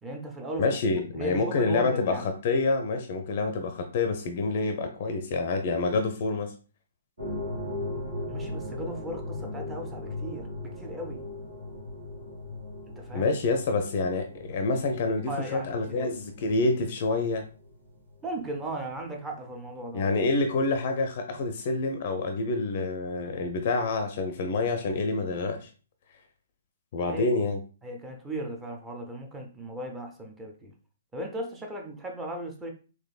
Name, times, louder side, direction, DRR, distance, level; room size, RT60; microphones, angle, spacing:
voice 1, 0.0-2.3 8.3-11.2 12.9-13.3 15.3-16.1 18.2-20.1 27.1-27.2 27.8-30.7 31.1-32.7, right 1 dB, 10° right, 3 dB, 0.5 m, -37 dB
voice 2, 0.6-6.5 13.1-17.4 19.9-25.7 26.9-27.6, left 3 dB, 40° left, 6 dB, 0.4 m, -27 dB
sound 1, 7.2-19.8 20.0-20.2 20.8-20.9, left 2 dB, 65° right, 1.7 m, -38 dB
3.8 x 3.0 x 2.3 m, 0.36 s
figure-of-eight pair, 125°, 0 cm